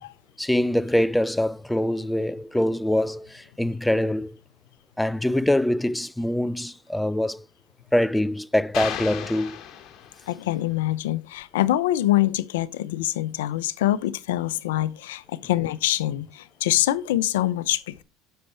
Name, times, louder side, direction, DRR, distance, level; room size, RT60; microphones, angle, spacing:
voice 1, 0.4-4.4 5.0-7.4 7.9-9.6, left 1 dB, 5° left, 0.4 m, -24 dB
sound 1, 8.7-10.5, left 10 dB, 55° left, 2.2 m, -34 dB
voice 2, 10.3-18.0, left 14 dB, 90° left, 0.6 m, -25 dB
9.5 x 6.7 x 4.4 m
supercardioid pair, 85°, 0 cm